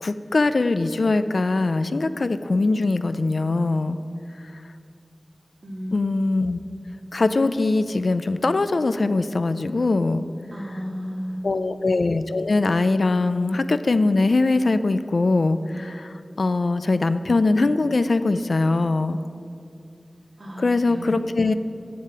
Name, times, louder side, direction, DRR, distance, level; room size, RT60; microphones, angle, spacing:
voice 1, 0.0-4.0 5.9-6.6 7.1-10.2 11.4-19.2 20.6-21.5, left 3 dB, 85° left, 12 dB, 0.4 m, -22 dB
voice 2, 5.6-6.0 10.5-11.6 20.4-21.2, equal, 65° right, -3 dB, 2.3 m, -33 dB
8.5 x 7.5 x 8.1 m, 2.5 s
wide cardioid pair, 45°, 0 cm